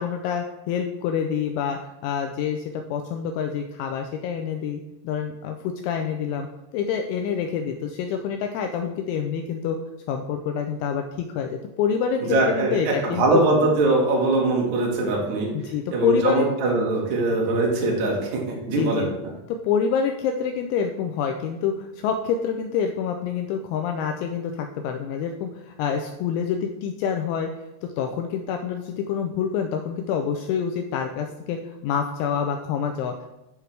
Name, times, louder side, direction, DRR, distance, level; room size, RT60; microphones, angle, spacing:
voice 1, 0.0-6.5 6.7-9.8 10.1-13.4 15.5-16.5 17.3-17.4 18.7-19.1 19.5-27.5 28.0-33.3, left 7 dB, 85° left, 4 dB, 2.7 m, -27 dB
voice 2, 12.3-15.5 15.9-19.1, right 2 dB, 60° right, -2 dB, 2.0 m, -22 dB
11.0 x 4.7 x 3.3 m, 0.96 s
omnidirectional pair, 5.8 m